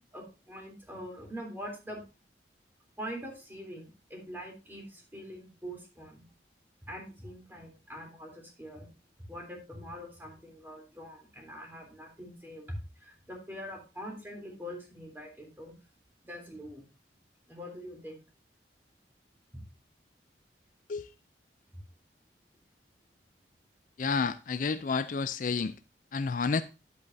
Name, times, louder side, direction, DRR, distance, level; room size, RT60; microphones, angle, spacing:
voice 1, 0.0-2.0 3.0-6.2 6.8-8.9 9.3-15.7 16.2-16.8 17.5-18.2 19.5-19.6, equal, 10° right, 3.3 m, -43 dB
voice 2, 24.0-25.7 26.1-26.6, left 5 dB, 50° left, 0.4 m, -30 dB
11.0 x 8.2 x 2.7 m
head